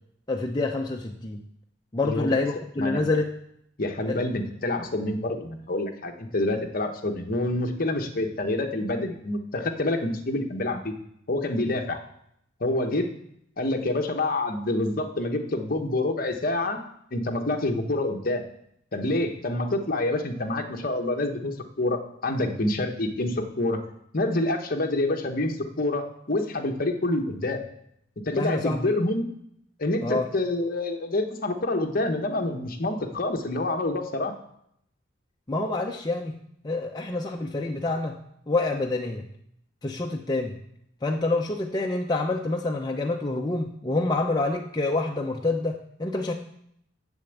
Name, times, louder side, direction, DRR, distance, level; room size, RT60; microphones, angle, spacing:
voice 1, 0.3-1.4 1.9-3.3 4.1-4.2 28.3-28.9 30.0-30.3 35.5-36.3 36.6-38.2 38.5-39.3 39.8-40.6 41.0-46.3, left 2 dB, 20° left, 1 dB, 0.6 m, -27 dB
voice 2, 3.8-10.9 11.3-12.0 12.6-13.1 13.6-16.9 17.1-18.4 18.9-23.8 24.1-27.6 28.3-29.3 29.8-34.3, left 2 dB, 45° left, 4 dB, 1.0 m, -27 dB
7.0 x 6.9 x 8.0 m, 0.74 s
head